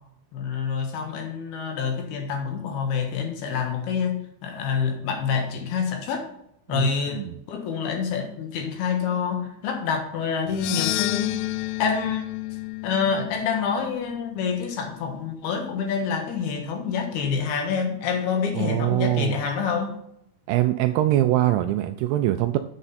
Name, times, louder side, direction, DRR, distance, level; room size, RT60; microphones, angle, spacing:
voice 1, 0.3-6.3 6.7-11.4 11.8-12.2 12.8-19.9, left 6 dB, 65° left, 3 dB, 3.1 m, -27 dB
voice 2, 6.7-7.4 18.5-19.4 20.5-22.6, right 14 dB, 85° right, 8 dB, 2.3 m, -23 dB
sound 1, 10.5-14.8, left 18 dB, 85° left, 2.8 m, -31 dB
8.0 x 7.5 x 4.1 m, 0.74 s
omnidirectional pair, 5.2 m